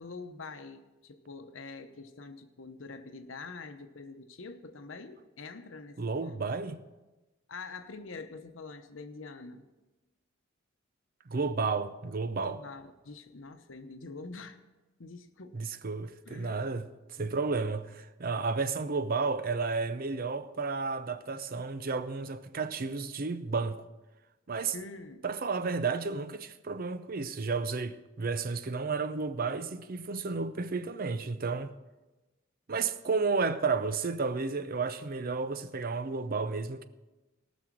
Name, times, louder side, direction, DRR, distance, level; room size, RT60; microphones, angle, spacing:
voice 1, 0.0-6.4 7.5-9.7 12.4-14.6 15.0-15.8 16.3-16.6 17.2-17.3 24.7-25.2, left 3 dB, 80° left, 0.9 m, -45 dB
voice 2, 6.0-6.8 11.3-12.6 15.5-23.8 24.5-24.7 25.2-31.7 32.7-36.9, right 4 dB, 45° right, 0.6 m, -32 dB
18.5 x 6.2 x 6.2 m
head